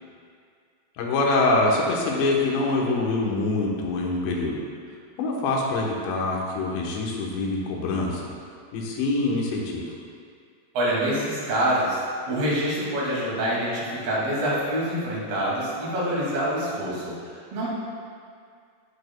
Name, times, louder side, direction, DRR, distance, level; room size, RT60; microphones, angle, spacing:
voice 1, 1.0-4.6 5.2-8.3 8.7-9.8, left 2 dB, 85° left, -2 dB, 3.4 m, -25 dB
voice 2, 10.7-12.0 12.3-17.1 17.5-17.7, right 1 dB, 65° right, -7 dB, 4.1 m, -26 dB
18.5 x 6.6 x 2.2 m, 2.2 s
omnidirectional pair, 4.9 m